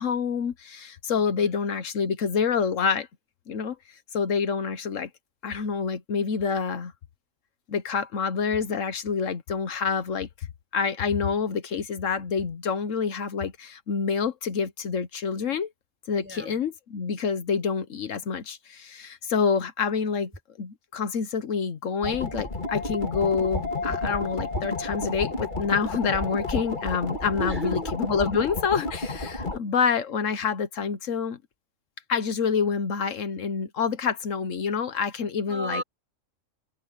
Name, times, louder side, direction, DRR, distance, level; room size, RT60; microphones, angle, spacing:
voice 1, 0.0-3.1 3.5-5.1 5.4-6.9 7.7-10.5 10.7-15.7 16.1-20.3 20.6-31.4 32.1-35.8, left 6 dB, 75° left, 1.4 m, -27 dB
voice 2, 1.1-1.6 16.1-16.6 27.3-27.9 29.1-29.6 35.5-35.8, right 1 dB, 10° right, 4.2 m, -36 dB
sound 1, 22.0-29.6, left 2 dB, 35° left, 2.6 m, -31 dB
omnidirectional pair, 1.3 m